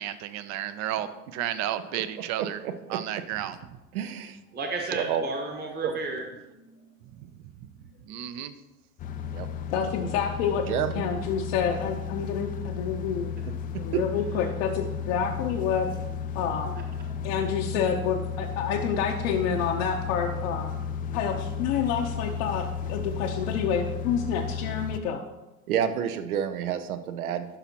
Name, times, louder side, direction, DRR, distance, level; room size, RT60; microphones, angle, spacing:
voice 1, 0.0-2.6 2.9-3.6 8.1-8.5, right 11 dB, 40° right, 13 dB, 0.6 m, -32 dB
voice 2, 2.4-3.0 3.9-4.4 4.9-5.2 5.8-5.9 9.3-9.5 10.7-11.1 13.9-14.0 16.7-16.8 25.7-27.5, right 9 dB, 75° right, 11 dB, 0.7 m, -29 dB
voice 3, 4.5-6.8 7.7-7.9, right 3 dB, 20° right, 2 dB, 1.1 m, -34 dB
sound 1, 9.0-25.0, left 7 dB, 20° left, 0.4 m, -34 dB
voice 4, 9.7-10.7 10.9-13.3 13.8-15.9 16.3-16.7 17.2-20.7 21.1-25.2, left 7 dB, 55° left, 2 dB, 0.8 m, -28 dB
12.0 x 5.7 x 2.9 m, 1.1 s
figure-of-eight pair, 80°, 44 cm